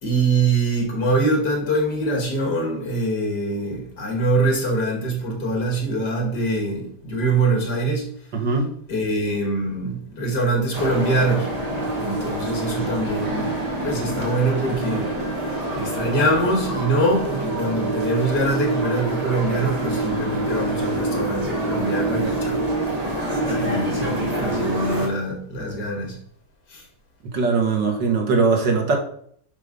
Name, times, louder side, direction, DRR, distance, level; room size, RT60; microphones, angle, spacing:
voice 1, 0.0-8.1 8.9-11.5 12.0-13.6 13.8-15.1 15.7-22.7 23.4-26.2 26.7-26.8, right 2 dB, 65° left, 1 dB, 2.9 m, -23 dB
voice 2, 8.3-8.7 27.3-29.0, right 4 dB, 80° right, 2 dB, 2.3 m, -20 dB
sound 1, 10.7-25.1, right 2 dB, 20° right, 1.8 m, -26 dB
10.0 x 3.8 x 5.5 m, 0.62 s
omnidirectional pair, 1.9 m